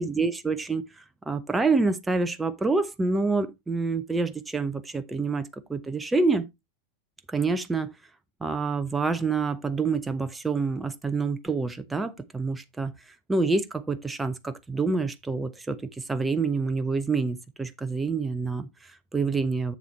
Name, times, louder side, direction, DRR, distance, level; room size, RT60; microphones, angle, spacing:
voice 1, 0.0-6.5 7.3-7.9 8.4-19.7, right 4 dB, 10° right, 0.7 m, -27 dB
7.3 x 7.2 x 3.1 m
figure-of-eight pair, 90°, 0 cm